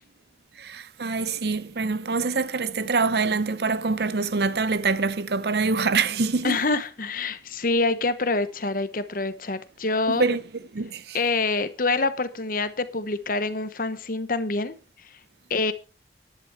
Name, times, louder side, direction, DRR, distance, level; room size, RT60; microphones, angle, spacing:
voice 1, 0.6-6.6 10.1-10.4 10.7-11.2, right 4 dB, 60° right, 0.7 m, -25 dB
voice 2, 6.4-10.2 11.1-14.7 15.5-15.7, left 3 dB, 50° left, 1.1 m, -26 dB
11.0 x 10.5 x 4.7 m
head